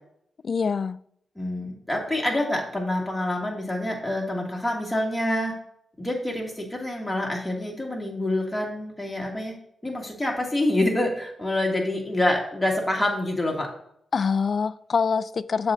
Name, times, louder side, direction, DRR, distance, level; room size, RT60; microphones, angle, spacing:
voice 1, 0.4-1.0 14.1-15.7, left 5 dB, 55° left, 0.3 m, -25 dB
voice 2, 1.4-5.5 6.0-9.5 9.8-13.7, left 1 dB, 10° left, 2.5 m, -26 dB
10.5 x 7.3 x 2.7 m
cardioid pair, 65°, 0 cm